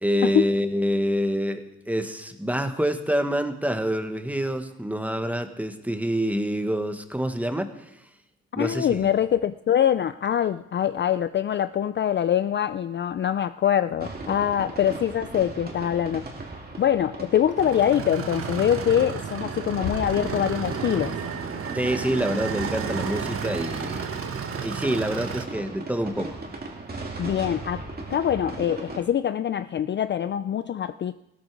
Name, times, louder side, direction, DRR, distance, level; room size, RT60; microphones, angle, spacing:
voice 1, 0.0-7.7 8.6-9.1 21.7-24.1 24.6-26.4, equal, 5° right, 8 dB, 1.3 m, -26 dB
voice 2, 8.5-16.3 16.8-21.2 27.2-31.1, left 9 dB, 40° left, 13 dB, 0.4 m, -24 dB
sound 1, 14.0-29.0, right 3 dB, 30° right, 2.4 m, -38 dB
sound 2, 17.6-25.5, right 6 dB, 45° right, 1.5 m, -32 dB
Bass drum, 19.8-21.2, left 5 dB, 75° left, 2.7 m, -37 dB
16.0 x 13.0 x 4.7 m, 0.90 s
cardioid pair, 90°, 30 cm